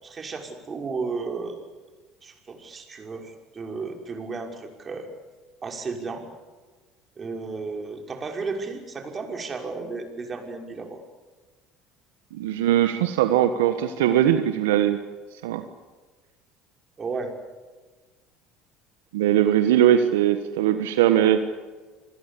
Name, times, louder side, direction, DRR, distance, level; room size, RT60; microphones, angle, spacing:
voice 1, 0.0-1.6 2.2-5.1 5.6-6.2 7.2-11.0 17.0-17.3, right 4 dB, 35° right, 3 dB, 5.8 m, -33 dB
voice 2, 12.3-15.0 15.4-15.6 19.1-21.6, right 11 dB, 80° right, 9 dB, 1.4 m, -20 dB
27.5 x 21.5 x 8.5 m, 1.3 s
hypercardioid pair, 70°, 0 cm